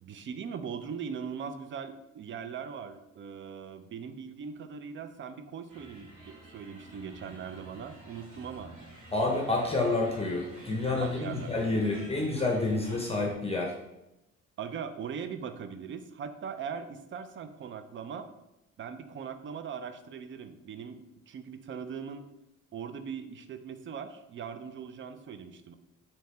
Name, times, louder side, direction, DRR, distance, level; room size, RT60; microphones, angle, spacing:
voice 1, 0.0-8.7 11.0-11.8 14.6-18.3 18.8-22.3 22.7-25.7, right 6 dB, 40° right, 10 dB, 0.4 m, -40 dB
sound 1, 5.7-13.3, right 2 dB, 80° right, 1.4 m, -49 dB
voice 2, 9.1-13.7, left 2 dB, 20° left, -1 dB, 0.7 m, -29 dB
3.2 x 2.8 x 4.2 m, 0.91 s
cardioid pair, 90°, 30 cm